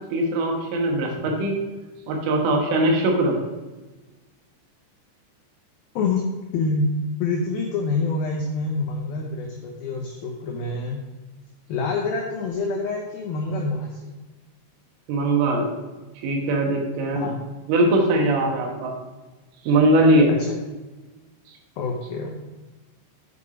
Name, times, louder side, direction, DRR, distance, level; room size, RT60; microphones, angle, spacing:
voice 1, 0.1-1.6 2.1-3.4 15.1-15.7 16.2-17.3 17.7-18.9 19.7-20.3, right 1 dB, 90° right, 1 dB, 4.0 m, -20 dB
voice 2, 6.5-11.0 11.7-14.1 17.2-17.4 20.3-20.6 21.8-22.4, left 3 dB, 90° left, 0 dB, 2.1 m, -26 dB
8.2 x 5.5 x 4.9 m, 1.2 s
omnidirectional pair, 5.5 m